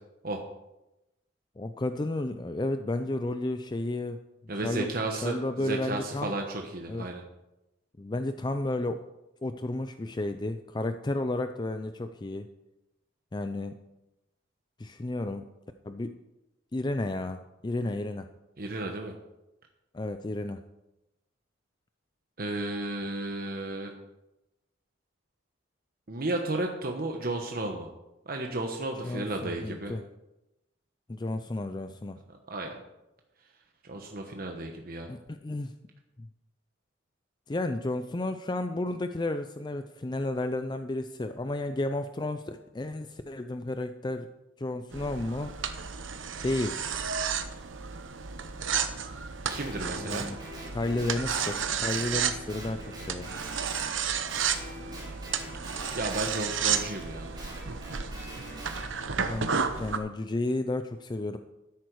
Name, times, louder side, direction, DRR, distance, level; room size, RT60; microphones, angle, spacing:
voice 1, 1.6-4.2 4.6-4.9 5.2-6.3 6.9-7.0 8.0-9.0 9.4-12.5 13.3-13.8 14.8-15.5 15.8-16.2 16.7-18.3 19.9-20.6 29.0-30.0 31.1-32.2 35.1-35.7 36.2-36.3 37.5-44.3 44.6-45.5 46.4-47.0 50.0-50.4 50.7-53.3 59.2-61.4, left 2 dB, 25° left, 9 dB, 0.4 m, -32 dB
voice 2, 4.5-7.2 18.6-19.1 22.4-23.9 26.1-27.9 28.3-30.0 32.5-32.8 33.8-35.1 49.5-50.3 55.9-57.4, right 2 dB, 50° right, 2 dB, 1.1 m, -33 dB
sound 1, 44.9-60.0, right 7 dB, 80° right, 1.0 m, -32 dB
Guitar, 49.5-53.9 54.3-58.8, equal, 25° right, 4.2 m, -44 dB
13.0 x 10.5 x 4.7 m, 0.96 s
head